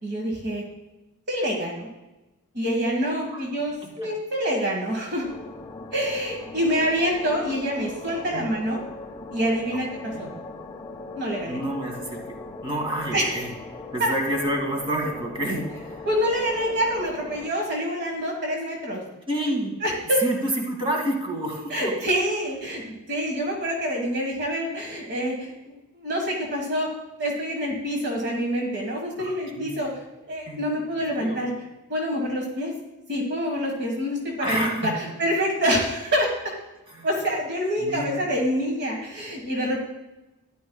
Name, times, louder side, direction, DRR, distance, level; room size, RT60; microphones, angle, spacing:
voice 1, 0.0-0.6 1.3-1.9 2.5-5.3 5.9-8.8 9.3-10.3 11.1-11.6 13.1-13.3 14.0-14.1 16.0-19.0 19.8-20.2 21.7-25.5 25.9-26.9 27.2-29.9 30.3-31.5 31.9-32.7 33.1-36.3 37.0-39.8, equal, 50° right, 0 dB, 1.6 m, -26 dB
voice 2, 3.8-4.1 6.5-6.6 8.3-8.5 10.1-10.3 11.4-12.4 12.6-13.5 13.9-16.1 18.9-19.8 20.2-21.9 29.2-29.8 30.5-30.8 31.2-31.4 34.4-34.9 36.9-37.1 37.8-38.3, right 1 dB, 25° right, 0 dB, 2.1 m, -29 dB
sound 1, 5.2-17.5, left 3 dB, 15° left, 0.6 m, -40 dB
13.5 x 11.0 x 2.3 m, 1.0 s
head